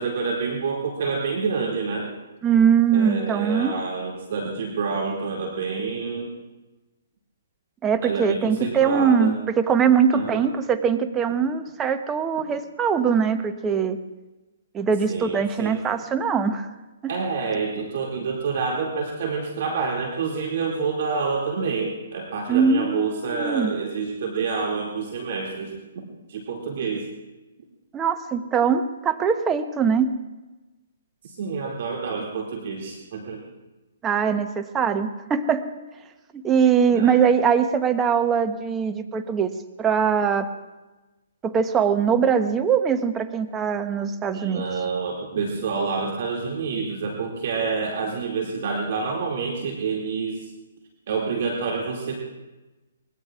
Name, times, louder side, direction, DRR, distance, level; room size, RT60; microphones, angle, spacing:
voice 1, 0.0-2.1 2.9-6.4 8.0-9.4 10.1-10.5 15.1-15.7 17.1-27.1 31.2-33.4 36.9-37.2 44.3-50.5 51.1-52.3, right 5 dB, 55° right, 0 dB, 2.3 m, -28 dB
voice 2, 2.4-3.7 7.8-14.0 14.7-16.7 17.0-17.1 22.5-23.7 27.9-30.1 34.0-35.7 36.3-39.5 39.8-40.5 41.4-44.6, right 7 dB, 15° right, 8 dB, 0.9 m, -22 dB
24.5 x 21.0 x 2.4 m, 1.1 s
hypercardioid pair, 140°, 0 cm